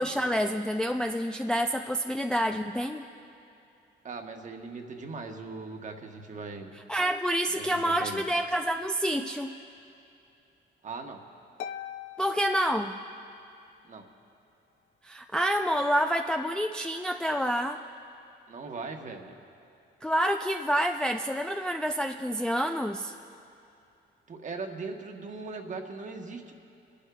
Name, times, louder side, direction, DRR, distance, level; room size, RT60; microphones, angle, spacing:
voice 1, 0.0-3.1 6.9-9.5 12.2-12.9 15.0-17.8 20.0-23.1, equal, 5° left, 4 dB, 0.3 m, -28 dB
voice 2, 4.0-6.7 7.5-8.2 10.8-11.2 13.8-14.0 18.5-19.4 24.3-26.5, right 4 dB, 40° right, 4 dB, 1.1 m, -39 dB
Harp, 11.6-13.5, left 9 dB, 80° left, 0.5 m, -42 dB
27.5 x 11.5 x 2.3 m, 2.6 s
cardioid pair, 105°, 20 cm